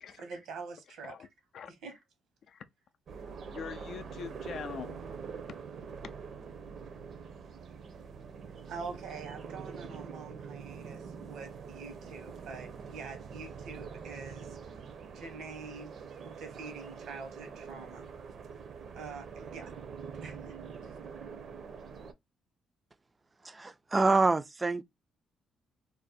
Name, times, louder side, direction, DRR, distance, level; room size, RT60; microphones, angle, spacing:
voice 1, 0.2-1.1 1.7-2.0 8.7-14.6 15.1-15.9 16.2-18.1 18.9-19.7 20.1-20.6, right 4 dB, 85° right, 1.1 m, -45 dB
sound 1, 3.1-22.1, right 6 dB, 60° right, 0.6 m, -45 dB
voice 2, 3.5-5.0, left 8 dB, 65° left, 0.4 m, -43 dB
voice 3, 23.4-24.8, right 3 dB, 25° right, 0.3 m, -26 dB
2.6 x 2.1 x 4.0 m
cardioid pair, 90°, 0 cm